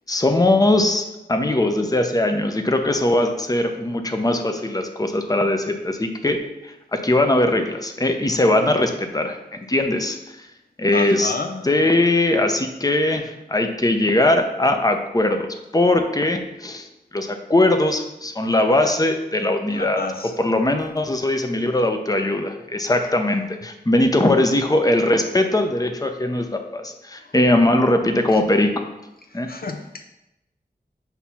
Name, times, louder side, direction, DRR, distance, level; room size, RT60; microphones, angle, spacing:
voice 1, 0.1-10.5 10.8-11.3 11.6-15.5 15.7-16.9 17.1-20.0 20.4-28.9 29.3-29.5, left 1 dB, 20° left, 5 dB, 0.7 m, -20 dB
voice 2, 10.9-11.9 19.7-20.3 27.2-27.4 28.3-28.4 29.3-30.0, left 4 dB, 60° left, 3 dB, 0.6 m, -31 dB
8.0 x 2.8 x 5.8 m, 0.92 s
wide cardioid pair, 60°, 17 cm